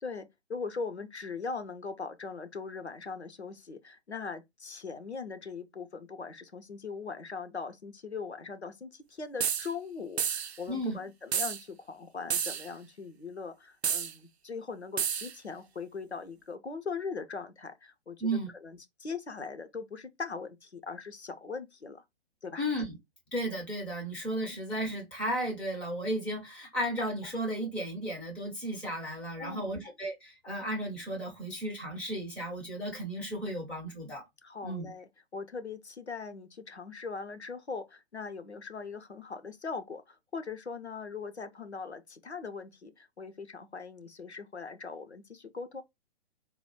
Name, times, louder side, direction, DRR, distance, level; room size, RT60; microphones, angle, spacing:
voice 1, 0.0-22.0 22.4-22.6 24.5-24.6 29.4-29.8 34.4-45.8, left 5 dB, 85° left, 0.8 m, -40 dB
sound 1, 9.4-9.7 10.2-10.6 11.3-11.6 12.3-12.7 13.8-14.1 15.0-15.3, right 8 dB, 80° right, 0.5 m, -30 dB
voice 2, 22.6-23.0 23.3-34.2 34.6-34.9, right 1 dB, 5° left, 0.4 m, -34 dB
3.9 x 2.3 x 4.4 m
figure-of-eight pair, 120°, 32 cm